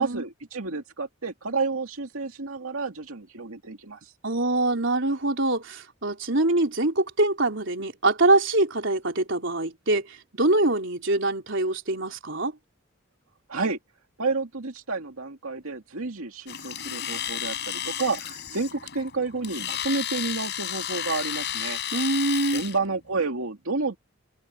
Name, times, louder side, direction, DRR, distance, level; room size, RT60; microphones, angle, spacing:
voice 1, 0.0-4.1 13.5-13.8 14.2-21.8 22.5-24.0, right 3 dB, 80° right, 2.3 m, -30 dB
voice 2, 4.2-12.5 21.9-22.6, right 2 dB, 60° right, 4.1 m, -24 dB
Domestic sounds home sounds, 16.5-22.8, left 10 dB, 55° left, 5.1 m, -32 dB
head